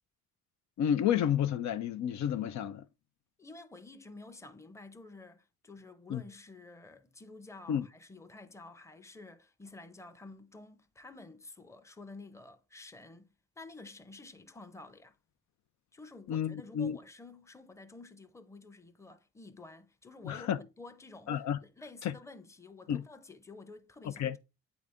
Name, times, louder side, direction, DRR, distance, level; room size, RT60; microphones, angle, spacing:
voice 1, 0.8-2.8 6.1-6.2 7.7-7.9 16.3-17.0 20.2-20.6 21.3-21.6 22.0-22.1 22.9-23.0 24.0-24.4, left 9 dB, 65° left, 0.5 m, -31 dB
voice 2, 3.4-15.2 15.9-24.4, left 3 dB, 10° left, 0.7 m, -51 dB
8.5 x 3.9 x 3.6 m
cardioid pair, 90°, 30 cm